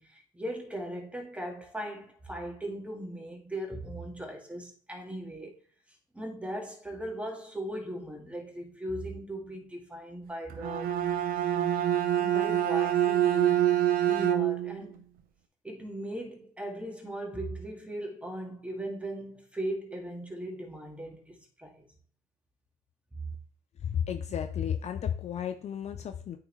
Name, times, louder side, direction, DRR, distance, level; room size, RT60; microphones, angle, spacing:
voice 1, 0.0-5.5 6.1-11.0 12.2-13.7 14.0-15.0 15.6-21.9 23.1-23.2, right 1 dB, 10° right, 1.8 m, -38 dB
Bowed string instrument, 10.5-14.8, right 11 dB, 65° right, 0.8 m, -26 dB
voice 2, 23.8-26.4, left 8 dB, 45° left, 0.6 m, -33 dB
8.9 x 3.7 x 3.2 m
supercardioid pair, 80°, 16 cm